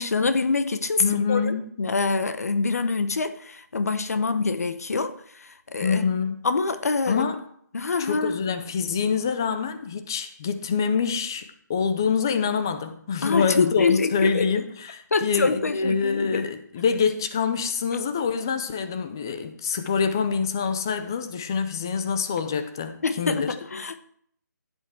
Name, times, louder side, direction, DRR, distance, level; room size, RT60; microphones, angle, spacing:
voice 1, 0.0-6.1 6.4-7.3 7.7-8.3 13.2-14.5 15.1-16.5 23.0-24.0, left 4 dB, 50° left, 0.9 m, -25 dB
voice 2, 1.0-1.6 5.8-6.5 7.1-7.4 8.0-23.5, left 6 dB, 10° left, 0.4 m, -26 dB
14.0 x 8.0 x 4.7 m
hypercardioid pair, 175°, 10 cm